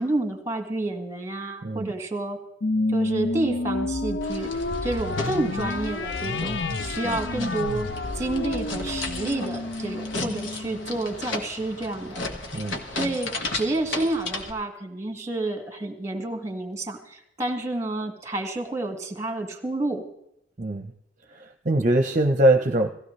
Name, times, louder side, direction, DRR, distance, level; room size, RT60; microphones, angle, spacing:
voice 1, 0.0-2.4 2.9-4.5 4.8-7.9 8.1-12.2 13.0-20.0, right 2 dB, 15° right, 5 dB, 2.1 m, -29 dB
voice 2, 1.6-1.9 7.0-7.2 12.5-12.8 20.6-20.9 21.3-22.9, right 1 dB, 40° right, 6 dB, 0.8 m, -22 dB
sound 1, 2.6-11.4, left 2 dB, 65° left, 0.7 m, -30 dB
sound 2, 4.2-14.5, left 2 dB, 85° left, 1.9 m, -35 dB
18.0 x 16.0 x 3.3 m, 0.78 s
head